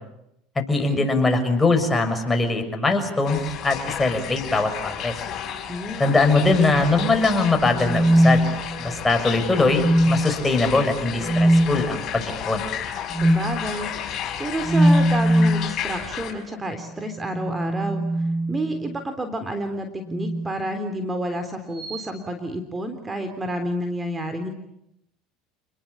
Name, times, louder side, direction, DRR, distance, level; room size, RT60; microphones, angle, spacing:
voice 1, 0.7-5.1 6.0-8.4 8.8-12.6, left 3 dB, 15° left, 5 dB, 6.4 m, -21 dB
sound 1, 3.2-16.3, left 9 dB, 45° left, 6.1 m, -32 dB
voice 2, 5.7-6.2 13.1-24.5, right 1 dB, 20° right, 7 dB, 3.6 m, -30 dB
sound 2, 7.7-9.0 9.7-10.4 11.2-11.7 13.1-13.5 14.6-15.7 17.2-19.0 20.1-20.5 21.8-22.0, right 1 dB, 35° right, 5.7 m, -20 dB
29.5 x 21.0 x 8.6 m, 0.80 s
supercardioid pair, 100°, 0 cm